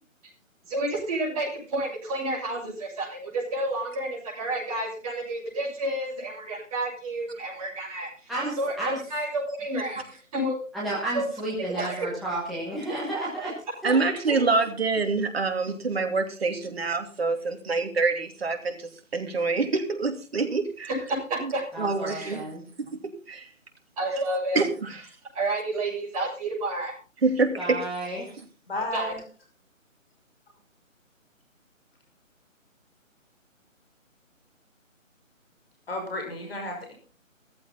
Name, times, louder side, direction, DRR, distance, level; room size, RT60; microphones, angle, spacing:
voice 1, 0.7-10.5 11.1-11.2 11.8-12.1 21.1-21.6 22.1-22.4 24.0-24.6 25.3-26.9 28.9-29.1, right 1 dB, 25° right, -2 dB, 6.8 m, -30 dB
voice 2, 8.3-9.0 10.7-13.5 13.8-14.0 14.3-14.4 21.7-22.6 27.6-28.3, right 1 dB, ahead, -9 dB, 1.4 m, -32 dB
voice 3, 13.8-20.9 21.4-21.5 21.8-22.5 22.8-23.5 24.5-25.0 27.2-27.8, right 4 dB, 50° right, 4 dB, 2.9 m, -26 dB
voice 4, 28.7-29.2 35.9-36.9, left 2 dB, 45° left, 3 dB, 5.8 m, -32 dB
15.5 x 14.5 x 4.1 m, 0.36 s
figure-of-eight pair, 160°, 40 cm